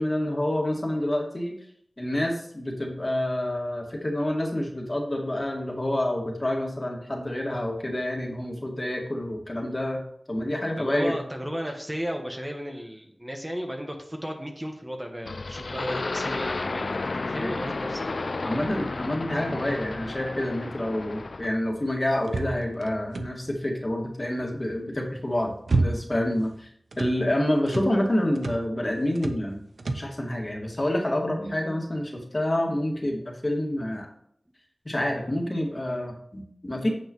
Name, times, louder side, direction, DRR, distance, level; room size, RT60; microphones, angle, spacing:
voice 1, 0.0-1.6 2.0-10.0 10.3-11.2 17.3-17.5 18.4-26.7 27.0-29.6 29.9-34.1 34.9-36.9, left 1 dB, 35° left, 0 dB, 2.0 m, -28 dB
voice 2, 10.8-18.8, equal, 15° right, 2 dB, 1.3 m, -35 dB
sound 1, 15.2-21.6, left 3 dB, 70° left, 0.3 m, -32 dB
sound 2, 22.2-23.6 25.1-26.3 26.6-27.2 27.7-28.0 28.3-28.7 29.1-29.5 29.8-30.1, right 2 dB, 85° right, 0.7 m, -29 dB
8.7 x 7.3 x 3.1 m, 0.67 s
wide cardioid pair, 40°, 0 cm